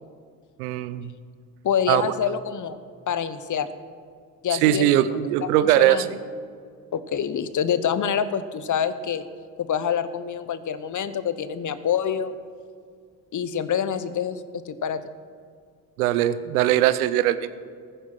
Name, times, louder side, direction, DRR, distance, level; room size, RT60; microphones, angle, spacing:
voice 1, 0.6-1.1 1.9-2.1 4.5-6.2 16.0-17.5, right 13 dB, 85° right, 14 dB, 0.7 m, -21 dB
voice 2, 1.6-2.8 3.1-3.7 4.4-6.1 6.9-9.2 9.6-12.3 13.3-14.4 14.7-15.0, left 8 dB, 45° left, 14 dB, 1.0 m, -26 dB
14.5 x 10.0 x 6.0 m, 2.2 s
hypercardioid pair, 50°, 43 cm